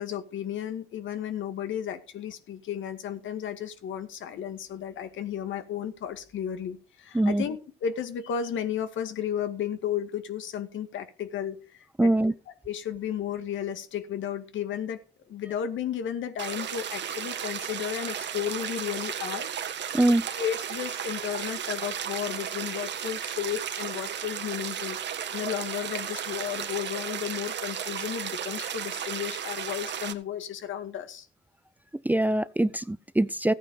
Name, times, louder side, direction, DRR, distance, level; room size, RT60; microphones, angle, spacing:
voice 1, 0.0-12.1 12.6-15.0 15.3-19.5 19.8-31.3, left 9 dB, 75° left, 2.1 m, -33 dB
voice 2, 12.0-12.3 19.9-20.2 32.0-33.5, right 1 dB, 10° right, 0.6 m, -23 dB
sound 1, 16.4-30.1, right 9 dB, 60° right, 1.6 m, -34 dB
14.5 x 9.1 x 5.3 m
cardioid pair, 90°, 20 cm